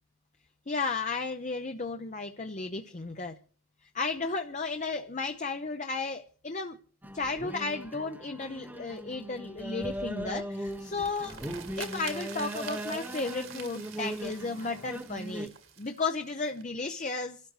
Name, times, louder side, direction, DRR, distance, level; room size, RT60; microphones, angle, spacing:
voice 1, 0.7-3.4 3.9-6.8 7.1-11.4 11.8-15.5 15.8-17.4, left 3 dB, 35° left, 0.7 m, -34 dB
sound 1, 7.0-15.5, right 1 dB, 10° right, 0.8 m, -39 dB
sound 2, 10.5-16.6, right 7 dB, 65° right, 2.3 m, -46 dB
27.0 x 12.5 x 3.2 m
head